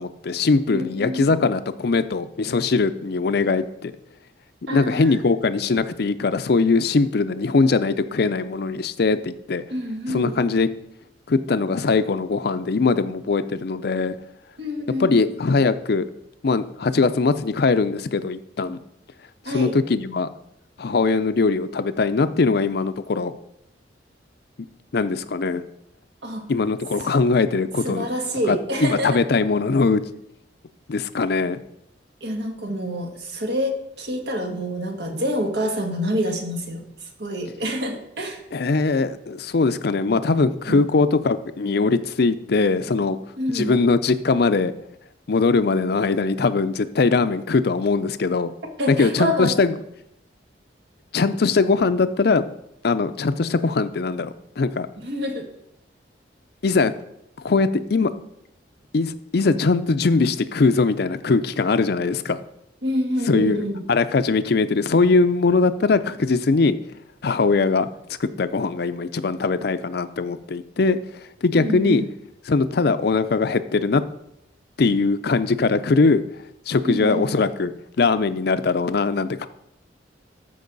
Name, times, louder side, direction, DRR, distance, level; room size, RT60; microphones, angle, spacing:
voice 1, 0.0-3.9 4.7-9.6 10.1-10.7 11.3-14.2 15.0-16.1 16.4-18.8 19.5-20.3 20.8-23.3 24.9-25.6 26.5-28.1 28.5-30.0 30.9-31.6 38.5-43.2 43.5-44.7 45.3-48.5 48.9-49.8 51.1-52.4 52.8-54.9 56.6-56.9 57.4-58.1 58.9-62.4 63.3-66.7 67.2-67.9 68.2-71.0 71.4-72.0 72.5-74.0 74.8-76.2 76.7-77.7 78.0-79.5, left 4 dB, 60° left, 12 dB, 0.5 m, -21 dB
voice 2, 0.7-1.3 4.7-5.2 9.7-10.3 14.6-15.3 19.5-19.7 26.2-26.4 27.8-29.2 32.2-36.8 37.2-38.4 40.7-40.9 43.4-43.7 48.8-49.5 55.0-55.5 62.8-63.8 71.6-72.1 76.8-77.3, equal, 70° right, 2 dB, 1.7 m, -27 dB
14.0 x 5.4 x 4.0 m, 0.79 s
head